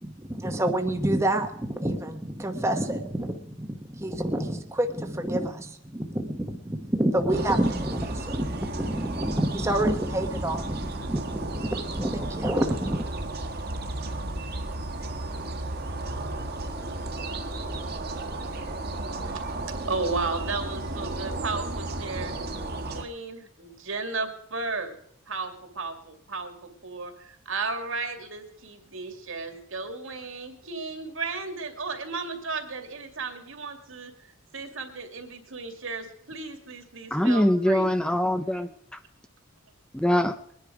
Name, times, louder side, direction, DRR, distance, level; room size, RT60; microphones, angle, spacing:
voice 1, 0.0-13.0, right 1 dB, 15° right, 4 dB, 1.0 m, -28 dB
sound 1, 7.3-23.0, right 2 dB, 50° right, 1.5 m, -33 dB
voice 2, 19.1-22.4 22.8-25.0 25.3-37.9, right 3 dB, 70° right, 5 dB, 2.4 m, -34 dB
voice 3, 37.1-38.7 39.9-40.4, left 1 dB, 5° left, 9 dB, 0.6 m, -23 dB
22.0 x 10.5 x 4.9 m, 0.69 s
head